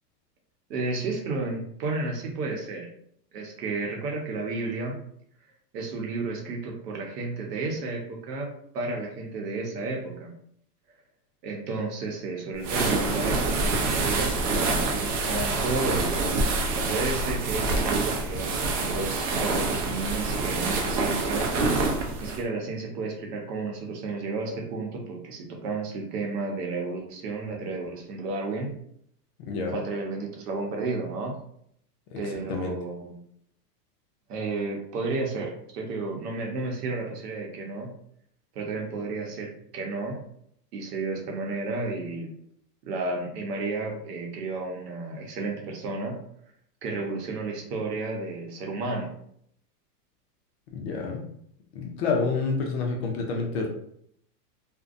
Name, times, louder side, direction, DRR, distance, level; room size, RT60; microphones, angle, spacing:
voice 1, 0.7-2.9 3.3-5.0 5.7-10.3 11.4-16.3 16.8-21.5 22.2-28.7 29.7-31.4 32.2-33.2 34.3-37.9 38.5-40.2 40.7-42.3 42.8-46.2 46.8-49.1, right 3 dB, 75° right, 1 dB, 0.9 m, -32 dB
sound 1, 12.6-22.4, right 3 dB, 50° right, 0.6 m, -26 dB
voice 2, 29.5-29.8 32.1-32.2 32.5-32.8 50.7-51.2 51.7-53.7, left 4 dB, 45° left, 1 dB, 0.5 m, -28 dB
2.6 x 2.1 x 2.4 m, 0.70 s
supercardioid pair, 145°, 48 cm